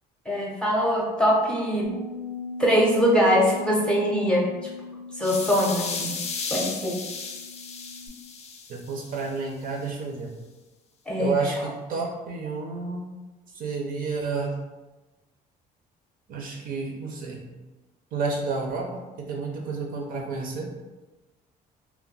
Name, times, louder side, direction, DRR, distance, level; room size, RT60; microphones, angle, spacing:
voice 1, 0.3-1.9 2.6-4.5 5.2-6.1 6.5-7.0 11.1-11.3, equal, 5° left, -4 dB, 0.7 m, -22 dB
Bass guitar, 1.8-8.1, left 3 dB, 85° left, 0.7 m, -39 dB
sound 1, 5.2-9.3, left 5 dB, 40° left, 0.4 m, -34 dB
voice 2, 8.7-10.4 11.2-13.0 13.5-14.5 16.3-17.4 18.1-18.8 19.2-20.7, right 4 dB, 55° right, 0 dB, 0.6 m, -30 dB
2.3 x 2.2 x 3.8 m, 1.1 s
cardioid pair, 110°, 17 cm